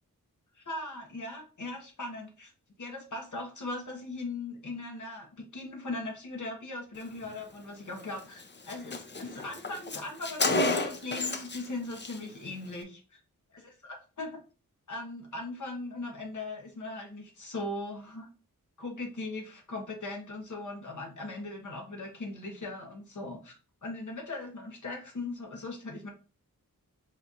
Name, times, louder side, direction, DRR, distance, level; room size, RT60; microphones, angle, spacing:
voice 1, 0.5-2.5 2.8-13.2 13.8-14.4 14.9-18.3 18.8-23.6 23.8-26.1, left 2 dB, 60° left, 1 dB, 1.0 m, -39 dB
Car, 8.0-8.1 8.4-8.5 8.7-11.6 11.9-12.2, left 2 dB, 35° left, 0.6 m, -31 dB
4.2 x 2.4 x 3.9 m, 0.36 s
wide cardioid pair, 95°, 34 cm